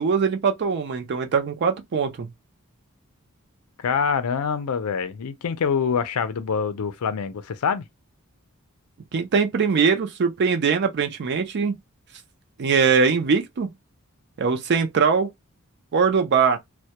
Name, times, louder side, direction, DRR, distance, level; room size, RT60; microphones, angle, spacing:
voice 1, 0.0-2.3 9.1-11.8 12.6-13.7 14.4-15.3 15.9-16.6, right 5 dB, 50° right, 0.4 m, -21 dB
voice 2, 3.8-7.8, left 6 dB, 85° left, 0.5 m, -25 dB
2.1 x 2.1 x 2.8 m
head